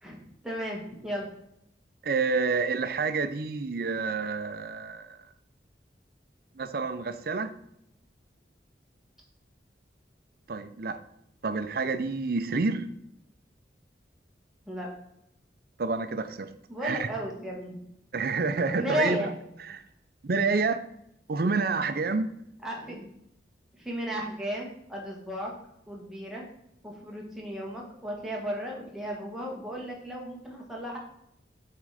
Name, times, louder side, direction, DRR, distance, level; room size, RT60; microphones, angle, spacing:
voice 1, 0.0-1.3 14.7-14.9 16.7-17.8 18.7-19.3 22.6-23.1 23.8-25.5 25.9-26.4 26.8-31.0, equal, 5° right, -2 dB, 1.5 m, -34 dB
voice 2, 2.0-5.2 6.6-7.5 10.5-11.0 11.4-12.9 15.8-16.5 16.8-17.1 18.1-19.3 19.7-19.8 20.2-20.8 21.3-22.3, right 4 dB, 55° right, 11 dB, 0.5 m, -28 dB
7.1 x 3.8 x 4.9 m, 0.77 s
head